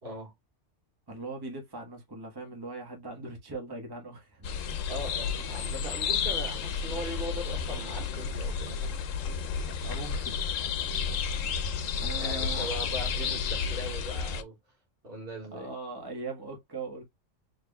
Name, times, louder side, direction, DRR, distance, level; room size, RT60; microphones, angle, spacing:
voice 1, 0.0-0.3 4.9-9.0 12.1-14.6 15.0-15.7, equal, 50° right, 1.8 m, -39 dB
voice 2, 1.1-4.5 9.8-10.4 11.9-12.9 15.5-17.0, right 3 dB, 20° right, 1.3 m, -40 dB
sound 1, 4.4-14.4, left 6 dB, 90° left, 1.1 m, -31 dB
4.5 x 3.4 x 2.2 m
omnidirectional pair, 1.3 m